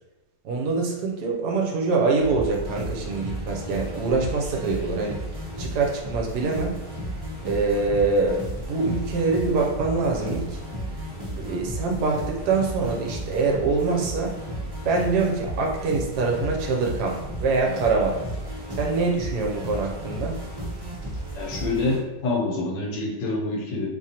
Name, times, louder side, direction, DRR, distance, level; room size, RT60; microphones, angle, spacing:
voice 1, 0.4-5.2 5.6-6.9 7.4-10.6 11.4-14.3 14.8-18.2 18.8-20.4, right 3 dB, 70° right, 0 dB, 1.1 m, -24 dB
sound 1, 2.2-22.0, right 1 dB, 30° right, 0.4 m, -34 dB
voice 2, 21.3-23.9, left 2 dB, 75° left, -1 dB, 1.5 m, -26 dB
3.7 x 3.1 x 2.8 m, 1.0 s
omnidirectional pair, 1.9 m